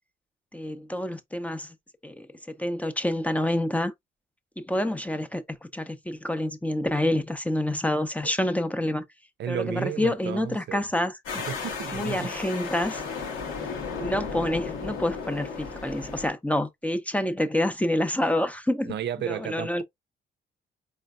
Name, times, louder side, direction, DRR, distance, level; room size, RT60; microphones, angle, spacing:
voice 1, 0.5-1.7 2.0-3.9 4.6-9.0 9.5-11.4 11.9-13.0 14.0-19.8, left 1 dB, 5° left, 0.6 m, -28 dB
voice 2, 9.4-10.8 11.5-12.3 18.9-19.8, right 10 dB, 60° right, 0.5 m, -33 dB
sound 1, 11.3-16.3, left 5 dB, 85° left, 1.5 m, -34 dB
4.4 x 3.3 x 2.4 m
cardioid pair, 90°, 20 cm